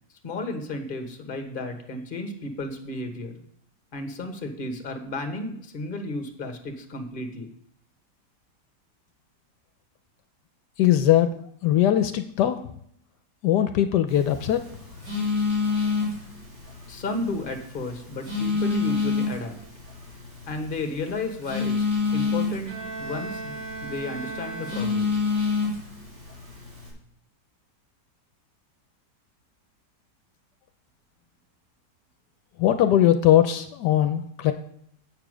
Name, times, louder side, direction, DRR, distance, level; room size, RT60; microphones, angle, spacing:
voice 1, 0.2-3.4 3.9-7.5 16.9-19.6 20.5-21.8 22.1-25.2, left 2 dB, 35° left, 6 dB, 1.2 m, -33 dB
voice 2, 10.8-11.3 11.6-12.6 13.4-14.6 32.6-34.5, left 11 dB, 80° left, 9 dB, 1.2 m, -20 dB
Telephone, 14.1-26.9, left 4 dB, 85° right, 4.3 m, -29 dB
Bowed string instrument, 22.7-25.4, right 4 dB, 50° right, 2.3 m, -37 dB
8.2 x 6.9 x 6.2 m, 0.70 s
omnidirectional pair, 1.8 m